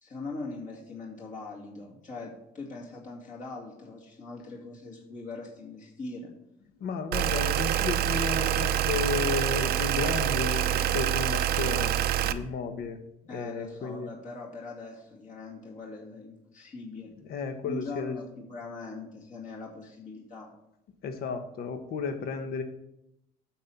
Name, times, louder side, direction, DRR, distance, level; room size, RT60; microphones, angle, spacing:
voice 1, 0.0-6.3 13.3-17.1 17.6-20.5, left 3 dB, 50° left, -3 dB, 2.2 m, -41 dB
voice 2, 6.8-11.9 12.2-13.0 13.3-14.1 17.2-18.2 21.0-22.6, left 5 dB, 65° left, 7 dB, 1.1 m, -33 dB
sound 1, 7.1-12.3, right 11 dB, 70° right, 0.6 m, -26 dB
9.0 x 4.4 x 7.0 m, 0.82 s
cardioid pair, 110°, 17 cm